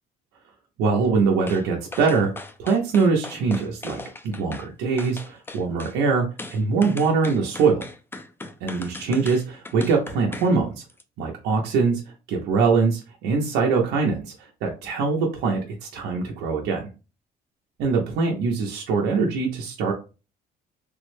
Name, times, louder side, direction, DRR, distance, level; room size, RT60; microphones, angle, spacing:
voice 1, 0.8-2.3 2.6-4.0 4.2-7.8 8.6-10.8 11.2-12.0 12.3-16.9 17.8-19.9, right 4 dB, 90° right, -1 dB, 0.7 m, -23 dB
sound 1, 1.5-1.6 1.9-4.7 5.0-6.0 6.4-10.5 10.9-11.0, left 2 dB, 15° left, 0.4 m, -38 dB
3.4 x 2.1 x 3.1 m, 0.31 s
cardioid pair, 110°, 17 cm